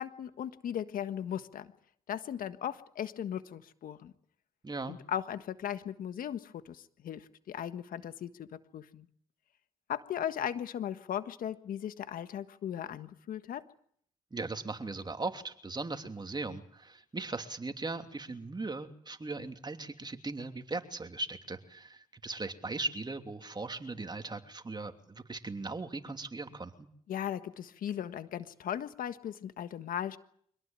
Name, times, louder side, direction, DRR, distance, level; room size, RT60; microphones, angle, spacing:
voice 1, 0.0-1.7 2.1-4.1 4.9-9.1 9.9-13.6 27.1-30.2, left 10 dB, 75° left, 11 dB, 1.5 m, -37 dB
voice 2, 4.6-5.0 14.3-26.9, right 3 dB, 30° right, 6 dB, 3.0 m, -38 dB
25.5 x 18.5 x 9.0 m, 0.63 s
supercardioid pair, 60°, 15 cm